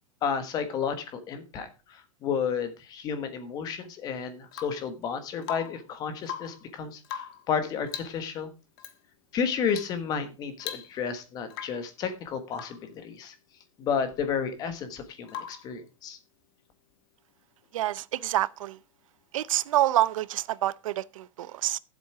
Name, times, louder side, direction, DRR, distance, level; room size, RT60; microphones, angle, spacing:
voice 1, 0.2-8.5 9.3-13.3 13.8-16.2, left 6 dB, 25° left, 1.4 m, -32 dB
Rain / Water tap faucet / Drip, 4.5-4.9 5.4-5.9 6.2-6.7 7.0-7.5 7.9-8.2 8.8-9.0 9.7-10.0 10.3-10.4 10.6-11.2 11.5-11.9 12.5-12.9 15.3-15.7 17.6-17.7, left 9 dB, 50° left, 1.3 m, -40 dB
voice 2, 17.7-18.8 19.3-21.8, right 14 dB, 85° right, 0.6 m, -27 dB
12.5 x 7.8 x 4.7 m
supercardioid pair, 175°, 16 cm